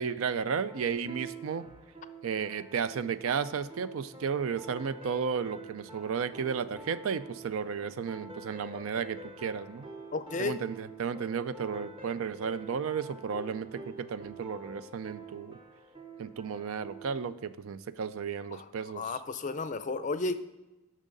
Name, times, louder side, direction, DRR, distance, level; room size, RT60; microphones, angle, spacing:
voice 1, 0.0-1.7 2.2-9.8 10.4-15.6 16.2-19.0, right 6 dB, 70° right, 15 dB, 0.4 m, -33 dB
sound 1, 0.7-17.2, right 2 dB, 20° right, 0.8 m, -47 dB
voice 2, 10.1-10.6 18.5-18.7 18.9-20.3, left 3 dB, 35° left, 12 dB, 0.4 m, -33 dB
10.0 x 6.3 x 3.9 m, 1.0 s
head